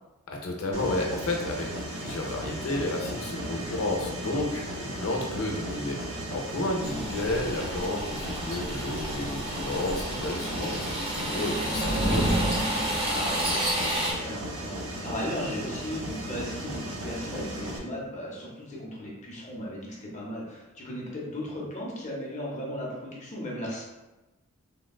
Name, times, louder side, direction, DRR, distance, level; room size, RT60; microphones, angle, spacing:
voice 1, 0.3-10.8 11.1-12.3, left 2 dB, 85° left, 0 dB, 0.6 m, -31 dB
Mechanisms, 0.7-17.8, right 1 dB, 85° right, 0.6 m, -36 dB
sound 1, 6.8-14.1, right 1 dB, 25° right, 0.6 m, -32 dB
voice 2, 10.4-10.7 13.1-23.8, equal, 35° left, -4 dB, 0.7 m, -36 dB
sound 2, 10.9-13.6, right 1 dB, 45° right, 1.0 m, -29 dB
3.5 x 2.2 x 2.3 m, 1.1 s
head